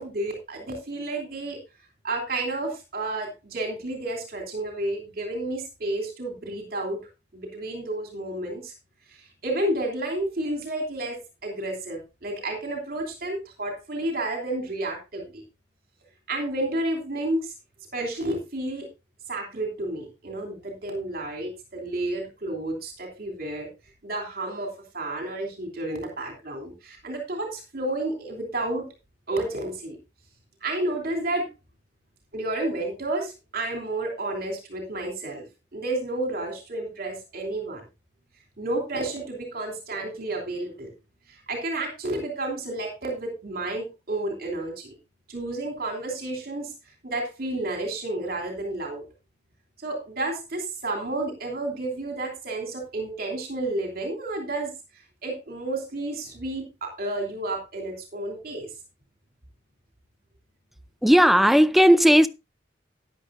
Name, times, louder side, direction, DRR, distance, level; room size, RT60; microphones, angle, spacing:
voice 1, 0.0-1.6 2.0-7.0 7.3-8.7 9.1-15.4 16.3-17.5 17.9-18.9 19.3-23.7 24.0-28.9 29.3-30.0 30.6-31.5 32.3-35.4 35.7-37.8 38.6-40.9 41.3-44.9 45.3-46.7 47.0-49.0 49.8-58.7, right 2 dB, 55° right, 3.1 m, -31 dB
voice 2, 61.0-62.3, equal, ahead, 0.5 m, -16 dB
13.0 x 10.5 x 2.6 m
head